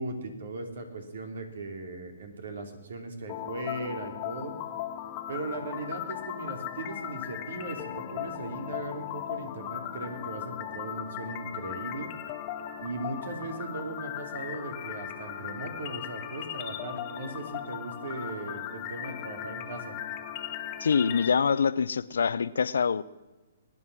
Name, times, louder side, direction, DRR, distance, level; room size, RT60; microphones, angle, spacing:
voice 1, 0.0-4.6 5.3-12.1 12.8-19.9, right 2 dB, 65° right, 5 dB, 3.1 m, -38 dB
sound 1, 3.3-21.3, left 10 dB, 35° left, 1.6 m, -38 dB
voice 2, 20.8-23.0, left 6 dB, 75° left, 16 dB, 0.7 m, -25 dB
22.0 x 9.7 x 6.2 m, 1.1 s
hypercardioid pair, 130°, 0 cm